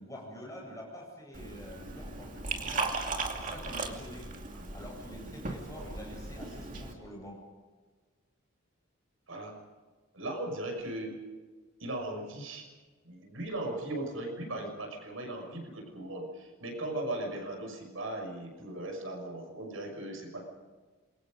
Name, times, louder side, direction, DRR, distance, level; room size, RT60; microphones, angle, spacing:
voice 1, 0.0-3.0 3.3-4.3 4.7-7.4 14.6-14.7, equal, 15° left, -1 dB, 8.0 m, -46 dB
Liquid, 1.3-6.9, right 3 dB, 40° right, 2.5 m, -37 dB
voice 2, 10.1-11.2 11.8-12.7 13.0-20.5, right 1 dB, 70° right, 3 dB, 6.2 m, -38 dB
27.0 x 22.5 x 5.3 m, 1.3 s
head